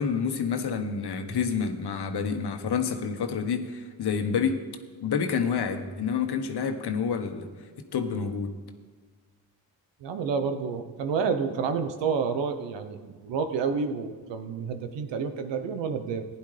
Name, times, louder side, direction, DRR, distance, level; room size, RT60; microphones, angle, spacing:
voice 1, 0.0-4.6 5.0-7.5 7.9-8.5, left 6 dB, 65° left, 6 dB, 1.3 m, -28 dB
voice 2, 10.0-16.3, right 5 dB, 85° right, 8 dB, 1.0 m, -29 dB
15.5 x 10.0 x 3.4 m, 1.4 s
supercardioid pair, 50°, 42 cm